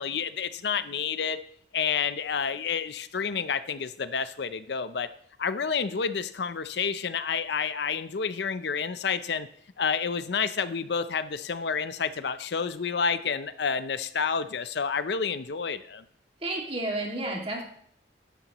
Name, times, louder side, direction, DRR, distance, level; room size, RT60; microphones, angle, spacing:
voice 1, 0.0-1.4 1.7-5.1 5.4-9.5 9.8-16.0, left 6 dB, 70° left, 13 dB, 0.6 m, -29 dB
voice 2, 16.4-17.6, right 2 dB, 30° right, 0 dB, 2.1 m, -31 dB
13.0 x 10.5 x 3.0 m, 0.63 s
head